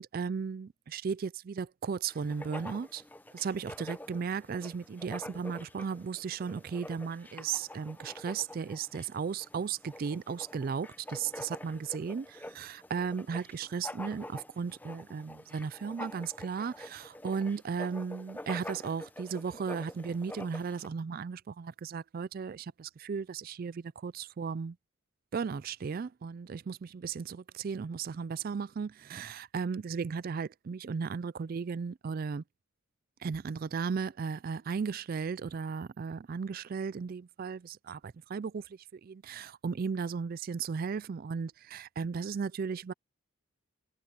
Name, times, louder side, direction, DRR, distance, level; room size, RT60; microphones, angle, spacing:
voice 1, 0.0-3.0 3.3-24.8 25.3-32.4 33.2-42.9, right 6 dB, 45° right, 0.3 m, -35 dB
Writing, 2.1-20.9, left 1 dB, 10° left, 0.7 m, -47 dB
head